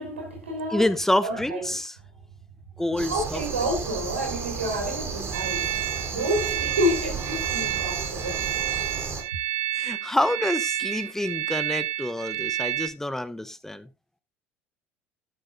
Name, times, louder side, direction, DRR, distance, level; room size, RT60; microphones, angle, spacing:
voice 1, 0.0-0.8 1.2-1.8 3.1-5.7 6.1-8.5, equal, 85° right, 3.7 m, -29 dB
voice 2, 0.7-1.9 2.8-3.4 9.7-13.9, left 1 dB, 5° left, 0.8 m, -27 dB
sound 1, 3.0-9.2, right 5 dB, 40° right, 3.5 m, -33 dB
sound 2, 5.3-12.9, right 12 dB, 60° right, 1.2 m, -30 dB
12.5 x 10.0 x 2.5 m
figure-of-eight pair, 65°, 7 cm